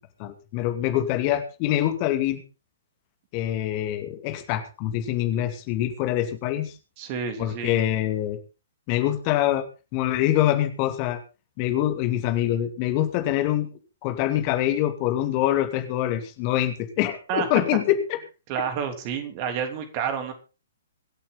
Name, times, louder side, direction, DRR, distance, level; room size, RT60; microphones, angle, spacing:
voice 1, 0.2-2.4 3.3-6.7 7.4-8.4 8.9-9.7 9.9-11.2 11.6-13.7 14.0-18.0, left 13 dB, 35° left, 7 dB, 2.4 m, -25 dB
voice 2, 7.0-7.8 17.3-17.5 18.5-20.3, right 7 dB, 35° right, 6 dB, 3.3 m, -29 dB
25.5 x 8.5 x 3.9 m, 0.33 s
figure-of-eight pair, 120°, 0 cm